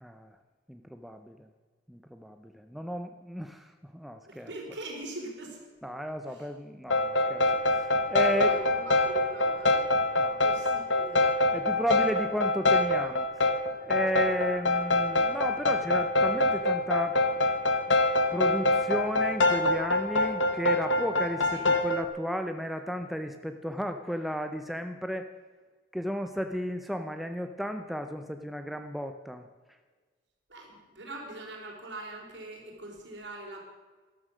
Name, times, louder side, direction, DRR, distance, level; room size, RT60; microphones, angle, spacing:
voice 1, 0.0-0.4 0.7-1.5 1.9-4.8 5.8-7.5 7.7-8.5 10.1-10.6 11.5-13.3 13.8-17.7 18.3-25.3 25.9-29.5, equal, ahead, 6 dB, 0.5 m, -34 dB
voice 2, 4.3-5.6 8.3-9.9 10.4-11.3 21.5-21.6 30.5-33.6, right 2 dB, 70° right, 0 dB, 3.9 m, -42 dB
sound 1, 6.9-22.0, left 2 dB, 80° left, 1.2 m, -25 dB
13.0 x 12.5 x 6.3 m, 1.4 s
head